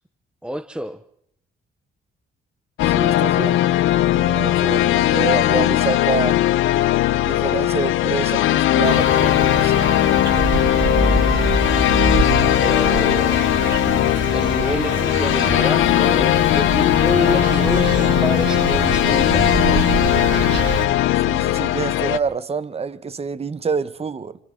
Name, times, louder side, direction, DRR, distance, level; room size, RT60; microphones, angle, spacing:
voice 1, 0.4-1.0 12.6-13.5 14.3-19.9, right 1 dB, 5° right, 0.9 m, -28 dB
sound 1, 2.8-22.2, left 14 dB, 90° left, 1.0 m, -18 dB
voice 2, 2.8-3.7 4.1-6.4 7.2-9.9 21.2-24.4, right 5 dB, 30° right, 1.2 m, -27 dB
sound 2, 8.8-20.9, right 3 dB, 60° right, 5.1 m, -25 dB
29.5 x 28.5 x 3.8 m
cardioid pair, 90°, 20 cm